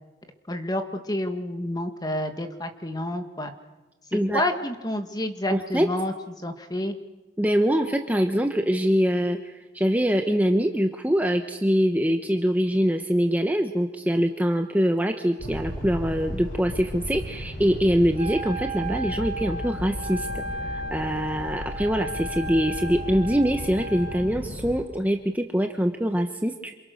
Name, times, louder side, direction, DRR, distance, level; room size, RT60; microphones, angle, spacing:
voice 1, 0.5-3.5 4.1-6.1 6.4-7.0, left 1 dB, 20° left, 6 dB, 1.8 m, -29 dB
voice 2, 4.1-4.4 5.5-5.9 7.4-9.4 9.7-20.3 20.7-26.7, equal, 10° right, 4 dB, 1.1 m, -24 dB
sound 1, 15.4-24.8, equal, 55° left, 5.2 m, -35 dB
Wind instrument woodwind instrument, 18.1-24.3, right 1 dB, 35° right, 3.9 m, -35 dB
27.5 x 27.5 x 6.6 m, 1.1 s
head